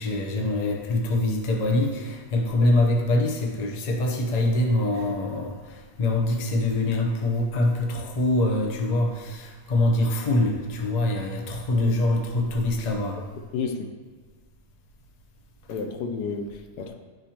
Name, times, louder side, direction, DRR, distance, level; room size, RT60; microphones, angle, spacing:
voice 1, 0.0-13.2, left 2 dB, 40° left, 2 dB, 0.6 m, -24 dB
voice 2, 13.5-13.9 15.7-16.9, left 5 dB, 80° left, 6 dB, 1.2 m, -31 dB
10.5 x 5.2 x 2.9 m, 1.4 s
omnidirectional pair, 1.7 m